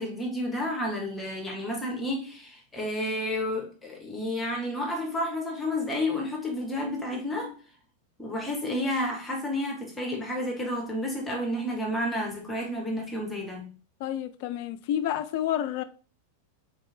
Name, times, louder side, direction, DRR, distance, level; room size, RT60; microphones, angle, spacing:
voice 1, 0.0-7.6 8.2-13.7, left 1 dB, 10° left, 1.3 m, -31 dB
voice 2, 14.0-15.8, left 11 dB, 50° left, 0.4 m, -29 dB
3.8 x 3.5 x 3.6 m
figure-of-eight pair, 90°, 0 cm